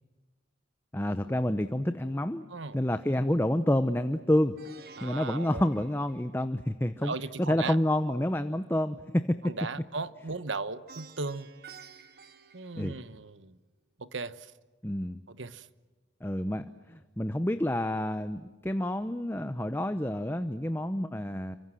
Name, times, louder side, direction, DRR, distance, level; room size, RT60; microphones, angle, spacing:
voice 1, 0.9-2.5 2.7-4.6 5.0-7.1 7.4-9.5 12.8-13.0 14.8-15.2 16.2-21.6, left 1 dB, 10° left, 10 dB, 0.8 m, -28 dB
Plucked string instrument, 4.6-6.7 10.9-13.5, right 5 dB, 50° right, 1.6 m, -52 dB
voice 2, 5.0-5.6 7.0-7.8 9.4-11.5 12.5-13.6 14.0-14.5 15.3-15.7, right 3 dB, 75° right, 14 dB, 1.2 m, -37 dB
29.0 x 25.5 x 7.7 m, 1.3 s
head